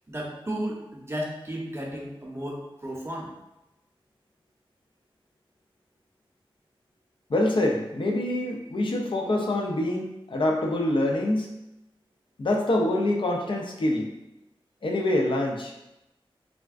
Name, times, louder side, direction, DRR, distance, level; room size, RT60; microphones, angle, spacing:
voice 1, 0.1-3.3, equal, 30° right, -2 dB, 0.7 m, -34 dB
voice 2, 7.3-11.5 12.4-14.1 14.8-15.7, left 1 dB, 60° left, 0 dB, 0.5 m, -25 dB
3.5 x 2.2 x 2.4 m, 0.93 s
cardioid pair, 50°, 9 cm